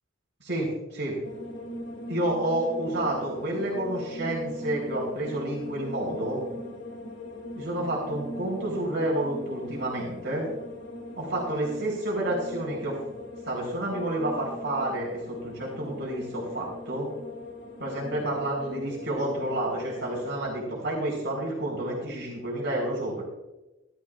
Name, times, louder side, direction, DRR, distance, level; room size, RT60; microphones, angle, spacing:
voice 1, 0.4-1.1 2.1-6.4 7.5-10.4 11.2-13.0 13.5-17.1 17.8-23.2, right 1 dB, 60° right, -3 dB, 4.1 m, -30 dB
sound 1, 1.2-20.5, left 1 dB, 60° left, 1.7 m, -40 dB
15.5 x 12.5 x 2.5 m, 1.0 s
head